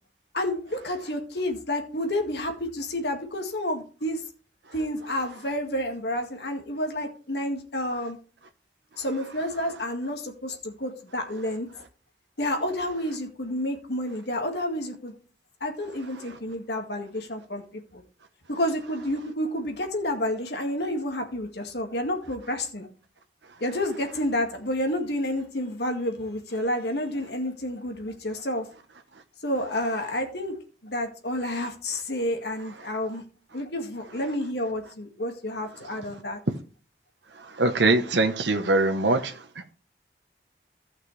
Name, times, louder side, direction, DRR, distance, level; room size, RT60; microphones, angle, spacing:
voice 1, 0.3-4.2 4.7-8.2 9.0-11.7 12.4-15.1 15.6-18.0 18.5-22.9 23.6-28.7 29.4-30.6 30.8-33.2 33.5-36.4, left 1 dB, 70° left, 4 dB, 2.0 m, -30 dB
voice 2, 37.6-39.3, right 2 dB, 85° right, 7 dB, 1.0 m, -22 dB
15.0 x 5.9 x 3.3 m, 0.38 s
head